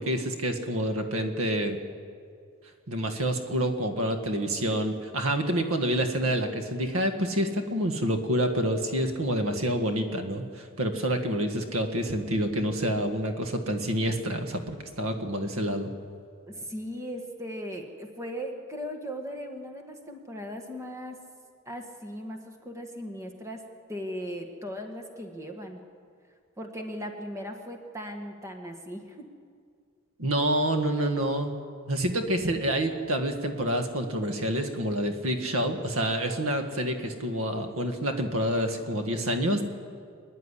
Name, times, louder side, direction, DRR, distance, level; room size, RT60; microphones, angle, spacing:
voice 1, 0.0-1.8 2.9-15.9 30.2-31.5 31.9-39.6, right 1 dB, 85° right, 6 dB, 1.7 m, -28 dB
voice 2, 16.5-21.2 21.7-23.6 23.9-25.8 26.6-29.3, equal, 15° right, 4 dB, 1.7 m, -38 dB
24.5 x 10.5 x 10.0 m, 2.2 s
head